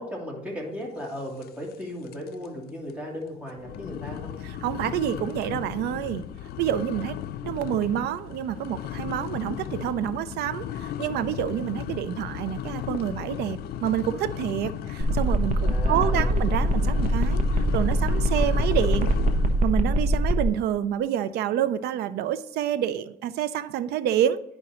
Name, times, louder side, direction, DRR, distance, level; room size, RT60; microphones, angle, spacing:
voice 1, 0.0-4.4 15.6-16.3, equal, 10° right, -3 dB, 2.8 m, -36 dB
sound 1, 1.4-2.5 2.9-3.0 3.6-19.7, left 10 dB, 65° left, 0.4 m, -35 dB
voice 2, 4.4-6.2 6.6-7.2 7.4-19.1 19.6-24.4, right 10 dB, 75° right, 13 dB, 0.5 m, -28 dB
sound 2, 15.0-20.4, right 1 dB, 45° right, 0.9 m, -23 dB
10.5 x 5.2 x 3.0 m, 0.88 s
cardioid pair, 110°, 17 cm